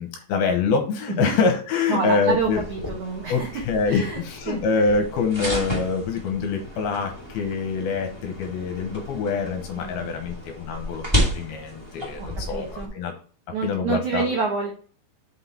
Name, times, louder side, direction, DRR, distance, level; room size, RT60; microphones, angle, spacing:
voice 1, 0.0-2.6 3.3-13.1 13.6-14.3, left 4 dB, 70° left, 4 dB, 2.5 m, -25 dB
voice 2, 1.9-3.5 3.9-4.2 4.5-4.6 9.8-10.1 12.2-12.9 13.5-14.7, right 5 dB, 75° right, 0 dB, 1.7 m, -28 dB
sound 1, 2.3-12.9, equal, 20° right, 0.7 m, -32 dB
6.2 x 5.8 x 4.3 m, 0.42 s
omnidirectional pair, 5.2 m